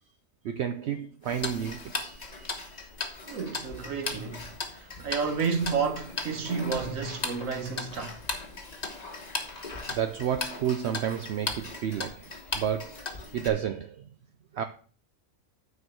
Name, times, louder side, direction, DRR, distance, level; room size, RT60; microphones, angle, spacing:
voice 1, 0.4-2.6 8.6-8.8 9.2-14.1 14.5-14.6, right 9 dB, 65° right, 0.8 m, -32 dB
Tick-tock, 1.3-13.5, left 3 dB, 35° left, 1.2 m, -37 dB
voice 2, 3.3-8.2, right 5 dB, 80° right, 1.7 m, -31 dB
9.5 x 4.4 x 6.1 m
omnidirectional pair, 1.4 m